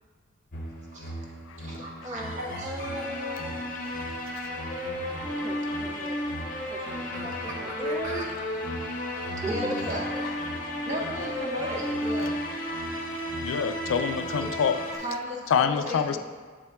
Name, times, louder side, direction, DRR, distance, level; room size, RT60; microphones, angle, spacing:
sound 1, 0.5-15.0, equal, 40° left, 0.7 m, -33 dB
voice 1, 0.9-1.3 1.6-3.0 5.3-5.4 7.1-7.2 7.8-8.2 9.5-10.3 10.9-12.4 14.4-14.6 14.9-16.2, equal, 35° right, -2 dB, 0.7 m, -35 dB
voice 2, 2.0-3.8 5.4-6.2 6.7-8.3 9.4-10.2 10.9-11.1, right 1 dB, 15° right, 1 dB, 0.3 m, -38 dB
voice 3, 13.3-14.8 15.5-16.2, left 7 dB, 85° left, 10 dB, 0.3 m, -26 dB
6.7 x 4.3 x 3.5 m, 1.6 s
head